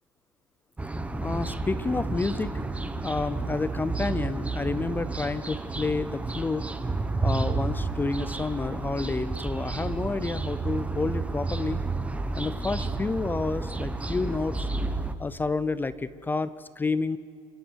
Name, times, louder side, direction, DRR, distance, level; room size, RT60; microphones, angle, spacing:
sound 1, 0.8-15.2, right 3 dB, 10° right, 1.0 m, -31 dB
voice 1, 1.2-2.6 3.0-6.7 7.2-11.8 12.3-14.7 15.2-17.2, left 3 dB, 15° left, 16 dB, 0.6 m, -30 dB
27.0 x 14.0 x 8.2 m, 2.2 s
cardioid pair, 145°, 14 cm